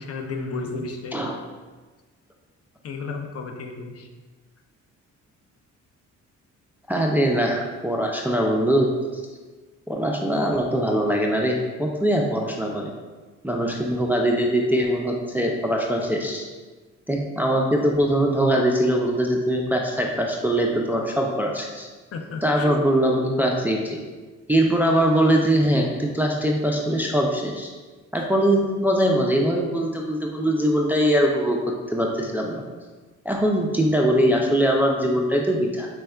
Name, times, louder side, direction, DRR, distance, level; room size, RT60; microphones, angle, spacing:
voice 1, 0.0-1.3 2.8-4.1 22.1-22.8, left 3 dB, 55° left, 3 dB, 0.5 m, -33 dB
voice 2, 6.9-9.2 9.9-12.9 13.4-16.4 17.1-21.9 22.4-24.0 24.5-27.7 28.1-31.6 31.9-32.6 33.3-35.9, equal, 5° right, 0 dB, 0.3 m, -22 dB
4.3 x 3.2 x 2.3 m, 1.3 s
cardioid pair, 90°, 30 cm